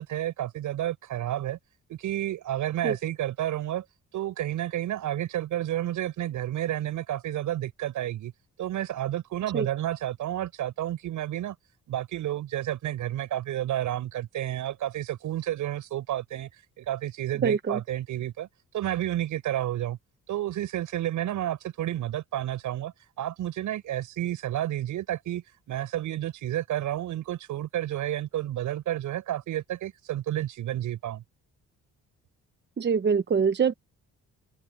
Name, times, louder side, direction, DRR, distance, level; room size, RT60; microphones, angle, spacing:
voice 1, 0.0-1.6 1.9-3.8 4.1-8.3 8.6-11.6 11.9-16.5 16.8-18.5 18.7-20.0 20.3-31.2, right 12 dB, 80° right, 6.9 m, -31 dB
voice 2, 17.4-17.8 32.8-33.7, right 6 dB, 35° right, 1.0 m, -24 dB
cardioid pair, 90°, 30 cm